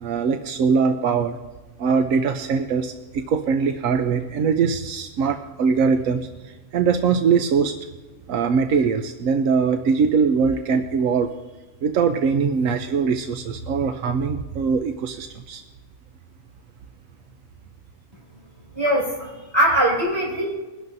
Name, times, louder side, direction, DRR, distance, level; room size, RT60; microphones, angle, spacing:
voice 1, 0.0-1.4 1.8-6.3 6.7-7.8 8.3-11.3 11.8-15.6, right 5 dB, 90° right, 6 dB, 1.1 m, -22 dB
voice 2, 18.7-20.5, right 1 dB, 20° right, -5 dB, 5.2 m, -21 dB
22.0 x 11.5 x 2.7 m, 1.2 s
omnidirectional pair, 1.3 m